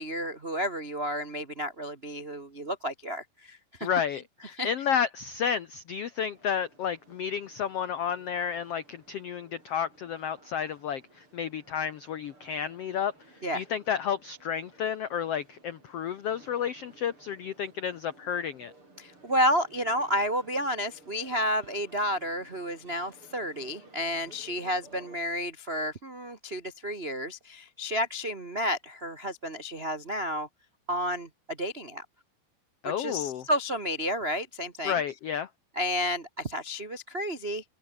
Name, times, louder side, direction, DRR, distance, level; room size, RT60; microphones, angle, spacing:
voice 1, 0.0-4.2 4.6-4.7 13.4-13.6 19.0-30.5 30.9-32.0 33.0-35.0 35.7-37.7, equal, 70° right, 0.5 m, -31 dB
voice 2, 3.8-13.1 13.5-18.7 32.8-33.4 34.8-35.5, left 8 dB, 85° left, 1.3 m, -31 dB
sound 1, 6.3-25.2, right 2 dB, 35° right, 8.9 m, -57 dB
omnidirectional pair, 4.2 m